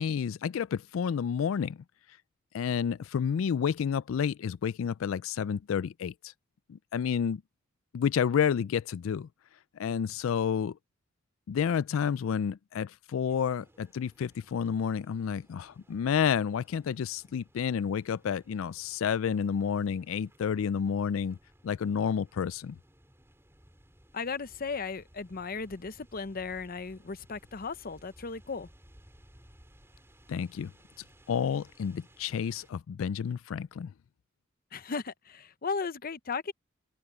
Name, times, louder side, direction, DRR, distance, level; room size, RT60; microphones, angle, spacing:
voice 1, 0.0-1.8 2.5-6.3 6.7-7.4 7.9-9.3 9.7-10.8 11.5-21.4 21.6-22.8 30.3-30.7 31.3-33.9, left 7 dB, 85° left, 0.4 m, -30 dB
sound 1, 13.3-32.7, equal, 15° right, 3.4 m, -60 dB
voice 2, 24.1-28.7 34.7-36.5, left 4 dB, 45° left, 0.7 m, -36 dB
head